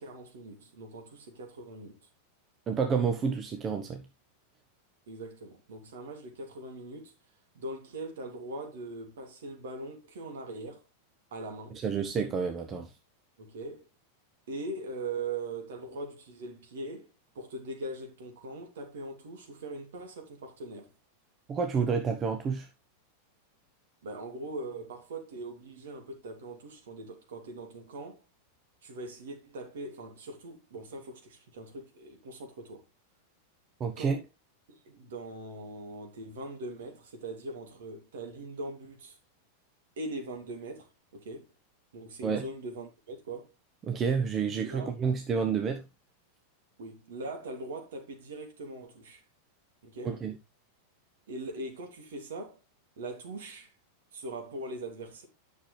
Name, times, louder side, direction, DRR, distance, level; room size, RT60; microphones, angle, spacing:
voice 1, 0.0-2.1 5.1-7.1 7.5-10.8 11.3-11.8 13.4-13.9 14.5-20.9 24.0-28.2 28.8-32.8 34.0-34.2 34.7-39.2 40.0-41.5 41.9-43.5 44.6-45.0 46.8-49.2 49.8-50.2 51.3-52.6 53.0-53.7 54.1-55.3, right 2 dB, 60° right, 2.9 m, -41 dB
voice 2, 2.7-4.0 11.7-12.9 21.5-22.7 33.8-34.2 42.2-42.4 43.8-45.8 50.0-50.3, right 6 dB, 25° right, 1.1 m, -29 dB
10.0 x 6.6 x 3.3 m
figure-of-eight pair, 90°, 0 cm